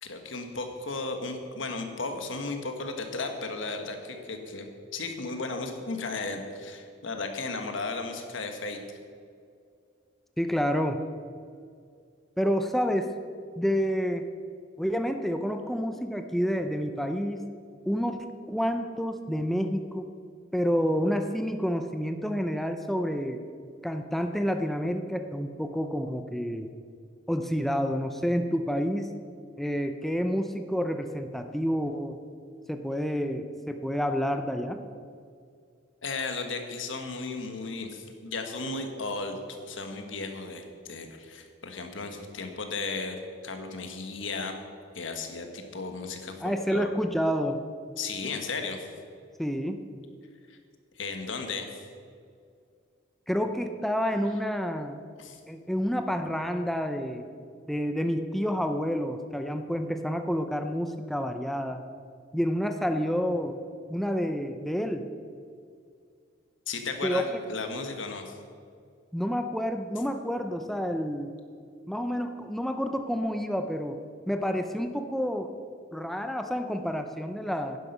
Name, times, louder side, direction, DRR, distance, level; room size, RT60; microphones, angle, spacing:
voice 1, 0.0-4.7 4.9-8.8 36.0-44.5 44.9-46.9 48.0-48.9 50.5-50.6 51.0-51.8 55.2-55.4 66.7-68.3, left 3 dB, 80° left, 5 dB, 1.5 m, -35 dB
voice 2, 10.4-11.0 12.4-13.1 13.6-14.3 14.8-17.5 17.9-18.2 18.5-20.1 20.5-23.4 23.8-26.7 27.3-29.1 29.6-32.2 32.7-34.8 46.4-47.6 49.4-49.8 53.3-55.0 55.5-57.3 57.7-61.8 62.3-63.6 63.9-65.0 67.0-67.4 69.1-71.3 71.9-74.0 74.3-75.5 75.9-77.8, equal, ahead, 6 dB, 0.5 m, -29 dB
11.0 x 10.5 x 5.4 m, 2.3 s
head